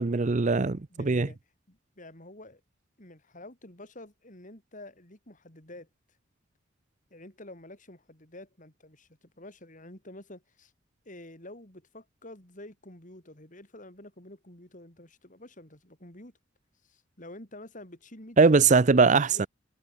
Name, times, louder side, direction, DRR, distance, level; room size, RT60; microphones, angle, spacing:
voice 1, 0.0-1.3 18.4-19.5, right 4 dB, 40° right, 0.6 m, -21 dB
voice 2, 0.9-1.4 1.7-2.6 3.0-5.9 7.1-10.7 11.0-16.3 16.8-18.7 19.3-19.5, left 1 dB, 40° left, 6.7 m, -48 dB
head